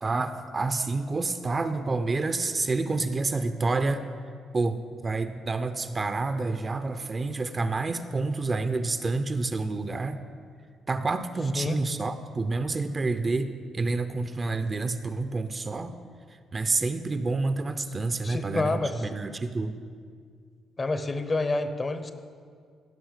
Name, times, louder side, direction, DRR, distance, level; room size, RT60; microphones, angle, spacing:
voice 1, 0.0-4.0 4.5-10.2 10.9-15.9 16.5-19.7, right 3 dB, 30° right, 10 dB, 0.6 m, -28 dB
voice 2, 18.2-19.0 20.8-22.1, left 3 dB, 30° left, 10 dB, 0.8 m, -28 dB
15.5 x 5.5 x 6.5 m, 2.1 s
cardioid pair, 90°, 0 cm